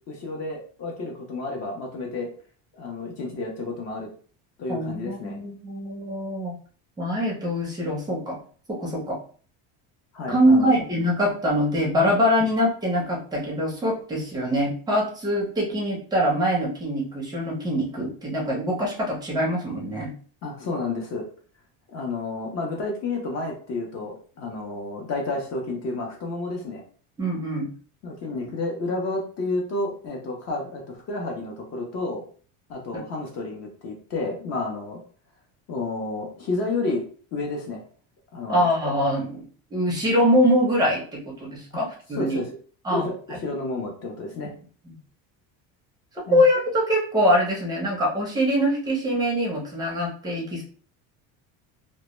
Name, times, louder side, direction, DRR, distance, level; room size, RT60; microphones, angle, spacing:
voice 1, 0.1-2.3 2.7-4.1 4.6-5.4 10.1-10.7 12.4-12.5 20.4-21.2 21.9-26.8 28.0-32.2 32.7-35.0 35.7-37.0 37.3-37.8 38.3-38.7 42.1-42.5 42.9-44.5 46.3-46.4, left 2 dB, 40° left, 1 dB, 0.5 m, -30 dB
voice 2, 4.7-6.5 7.0-8.4 8.7-9.2 10.3-20.1 27.2-27.7 38.5-39.4 39.7-42.4 42.8-43.0 44.9-45.0 46.2-50.6, equal, 10° right, -2 dB, 0.5 m, -23 dB
2.1 x 2.0 x 2.9 m, 0.43 s
cardioid pair, 165°, 40 cm